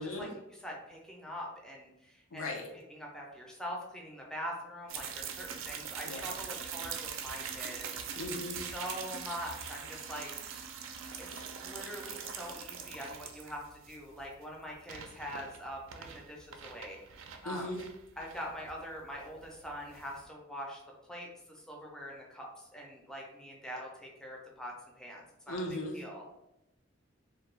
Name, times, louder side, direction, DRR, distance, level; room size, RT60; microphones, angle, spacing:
voice 1, 0.0-8.0 8.6-10.3 11.3-17.0 17.4-17.8 18.2-20.8 21.1-25.6 25.9-26.2, equal, 5° left, -2 dB, 0.4 m, -43 dB
voice 2, 2.3-2.7 6.1-6.2 8.1-8.6 17.4-17.8 25.5-26.0, left 1 dB, 90° left, 1 dB, 0.6 m, -37 dB
sound 1, 4.9-20.2, right 7 dB, 75° right, 0.3 m, -43 dB
2.2 x 2.2 x 3.1 m, 0.90 s
head